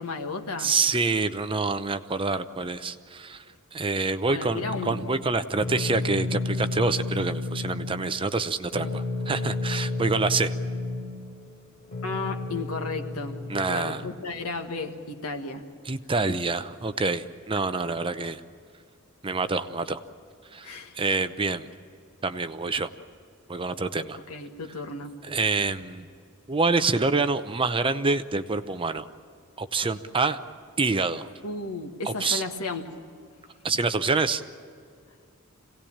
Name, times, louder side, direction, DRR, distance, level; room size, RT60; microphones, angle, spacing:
voice 1, 0.0-0.7 4.3-5.1 12.0-13.4 13.7-15.6 20.6-21.0 24.3-25.1 31.4-32.9, left 3 dB, 80° left, 4 dB, 1.7 m, -33 dB
voice 2, 0.6-3.4 3.7-10.5 13.5-14.0 15.9-18.4 19.2-20.0 20.5-21.7 22.2-22.9 23.5-24.2 25.2-26.1 26.5-29.0 29.6-30.4 30.8-31.3 32.0-32.4 33.6-34.4, right 3 dB, 25° right, 10 dB, 0.7 m, -26 dB
sound 1, 4.6-14.5, left 2 dB, 35° left, 3.7 m, -32 dB
26.0 x 18.0 x 8.7 m, 2.3 s
head